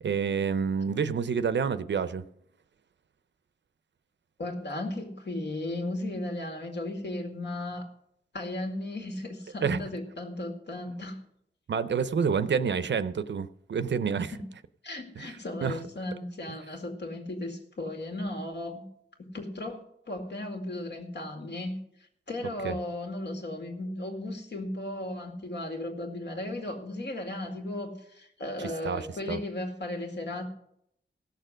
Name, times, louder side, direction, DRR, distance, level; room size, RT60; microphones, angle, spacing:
voice 1, 0.0-2.2 9.6-9.8 11.7-14.3 15.2-15.3 15.6-15.8 22.6-22.7 28.8-29.4, right 6 dB, 65° right, 0.6 m, -28 dB
voice 2, 4.4-7.9 8.3-11.2 14.2-14.4 14.8-18.8 19.2-21.8 22.3-30.5, left 1 dB, 65° left, 2.1 m, -35 dB
16.5 x 6.7 x 6.3 m
wide cardioid pair, 120°, 20 cm